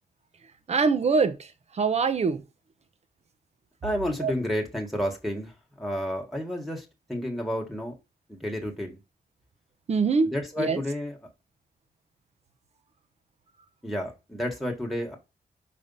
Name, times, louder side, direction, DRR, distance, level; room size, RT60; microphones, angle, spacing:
voice 1, 0.7-1.5 1.7-2.4 4.2-4.3 9.9-10.3 10.6-10.8, right 4 dB, 45° right, 0.8 m, -23 dB
voice 2, 3.8-7.9 8.3-9.0 10.2-11.2 13.8-15.2, equal, ahead, 1.5 m, -31 dB
5.3 x 5.2 x 5.4 m
wide cardioid pair, 125°, 16 cm